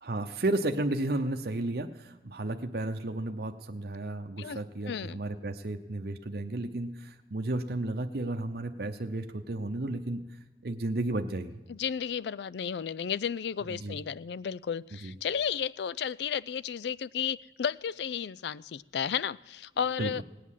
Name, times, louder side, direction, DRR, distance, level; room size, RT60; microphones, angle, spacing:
voice 1, 0.0-10.4 10.6-11.6 13.7-14.0 15.0-15.1 20.0-20.1, right 2 dB, 60° right, 5 dB, 0.8 m, -33 dB
voice 2, 4.9-5.2 11.7-20.2, left 7 dB, 70° left, 20 dB, 0.4 m, -33 dB
18.0 x 8.5 x 7.3 m, 1.1 s
head